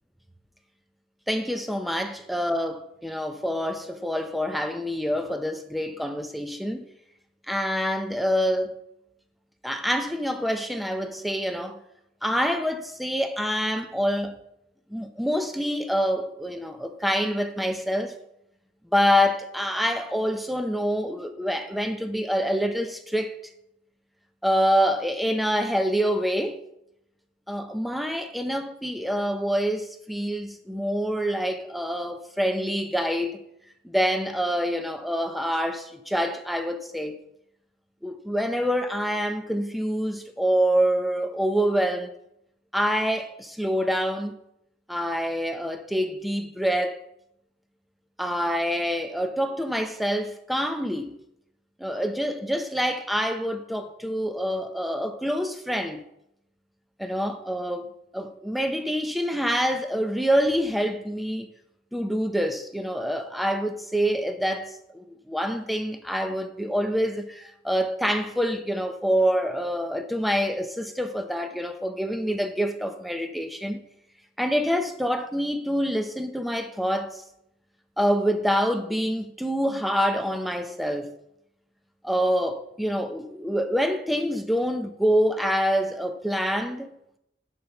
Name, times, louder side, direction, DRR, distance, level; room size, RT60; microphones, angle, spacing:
voice 1, 1.3-6.9 7.5-8.8 9.6-11.8 12.2-14.4 14.9-18.1 18.9-23.4 24.4-26.6 27.5-33.4 33.8-37.2 38.0-42.1 42.7-44.3 44.9-47.0 48.2-51.2 51.8-56.0 57.0-57.9 58.1-61.5 61.9-73.8 74.4-77.2 78.0-81.1 82.0-86.9, equal, ahead, 0.6 m, -26 dB
6.7 x 5.8 x 6.9 m
head